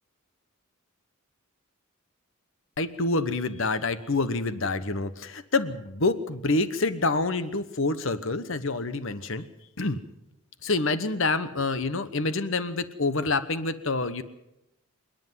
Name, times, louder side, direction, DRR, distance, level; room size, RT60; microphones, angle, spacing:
voice 1, 2.8-9.4 9.8-10.0 10.6-14.2, left 3 dB, 60° left, 13 dB, 1.2 m, -27 dB
27.5 x 10.5 x 9.3 m, 0.87 s
head